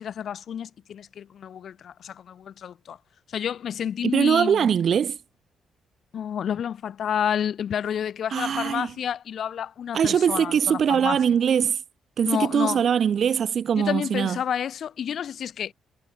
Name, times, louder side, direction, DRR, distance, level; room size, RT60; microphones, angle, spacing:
voice 1, 0.0-3.0 3.3-4.7 6.1-11.2 12.2-12.8 13.7-15.7, left 8 dB, 60° left, 0.5 m, -30 dB
voice 2, 4.0-5.2 8.3-8.9 9.9-11.8 12.2-14.4, right 8 dB, 55° right, 0.4 m, -22 dB
cardioid pair, 90°, 0 cm